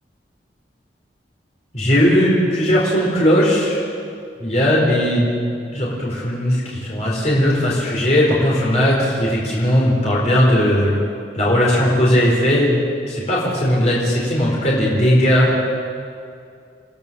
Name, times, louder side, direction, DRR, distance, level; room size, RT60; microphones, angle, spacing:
voice 1, 1.7-3.8 4.4-5.3 5.7-11.0 11.3-15.5, equal, 40° left, -5 dB, 4.7 m, -17 dB
28.5 x 16.5 x 7.1 m, 2.4 s
head